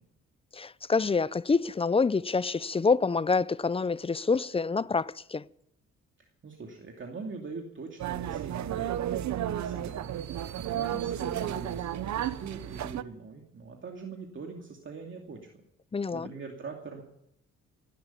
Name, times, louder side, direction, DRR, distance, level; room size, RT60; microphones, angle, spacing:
voice 1, 0.5-5.4 15.9-16.3, left 4 dB, 20° left, 0.5 m, -27 dB
voice 2, 6.2-15.6 16.1-17.0, right 4 dB, 40° right, 2.6 m, -43 dB
sound 1, 8.0-13.0, right 11 dB, 65° right, 0.9 m, -33 dB
17.0 x 11.5 x 7.1 m
cardioid pair, 90°, 30 cm